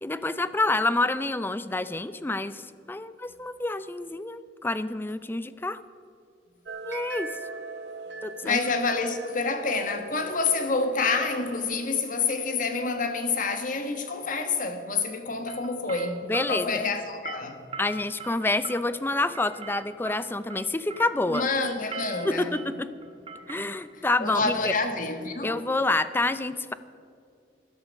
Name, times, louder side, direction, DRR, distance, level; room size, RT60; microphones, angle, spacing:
voice 1, 0.0-5.8 6.8-7.3 8.2-8.6 16.3-16.8 17.8-21.4 22.2-22.9 23.5-24.7 25.4-26.7, left 2 dB, 10° left, 0.4 m, -28 dB
sound 1, 6.7-11.9, right 3 dB, 70° right, 1.0 m, -40 dB
voice 2, 8.4-17.6 21.3-22.6 23.9-25.6, left 4 dB, 50° left, 1.3 m, -28 dB
sound 2, 15.5-25.3, right 4 dB, 30° right, 1.1 m, -43 dB
13.0 x 12.5 x 5.2 m
head